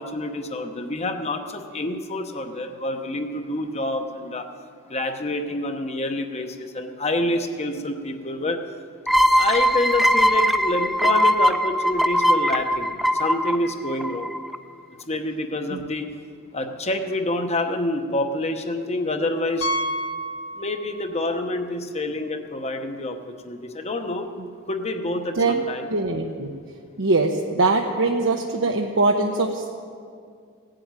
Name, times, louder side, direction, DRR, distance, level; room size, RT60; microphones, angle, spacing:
voice 1, 0.0-4.5 4.9-8.6 9.3-14.3 15.1-16.1 16.5-19.7 20.5-24.3 24.7-25.9, left 2 dB, 30° left, 6 dB, 1.0 m, -27 dB
sound 1, 9.1-14.6, equal, ahead, 0.5 m, -20 dB
Piano, 19.6-21.2 21.5-21.6 22.2-22.3 22.6-22.7 24.7-24.8, right 1 dB, 70° left, 1.4 m, -29 dB
voice 2, 25.9-26.5 27.0-29.7, right 3 dB, 65° right, 2 dB, 0.9 m, -22 dB
17.0 x 7.8 x 9.0 m, 2.2 s
head